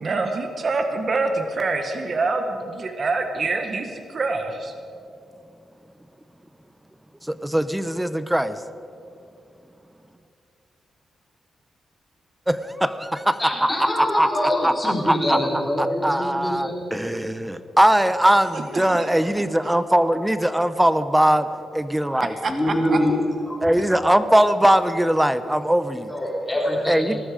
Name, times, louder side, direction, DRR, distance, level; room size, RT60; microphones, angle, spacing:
voice 1, 0.0-4.7 18.5-19.1 22.4-23.0, right 3 dB, 45° right, 6 dB, 1.5 m, -26 dB
voice 2, 7.3-8.6 12.5-13.2 14.0-15.4 15.8-21.5 21.7-22.3 23.6-26.1 26.9-27.2, right 1 dB, 5° right, 12 dB, 0.8 m, -20 dB
voice 3, 13.4-16.8 22.5-23.2 23.5-23.8 26.1-27.2, left 1 dB, 15° left, -3 dB, 3.7 m, -24 dB
19.5 x 13.0 x 5.1 m, 2.7 s
cardioid pair, 90°, 0 cm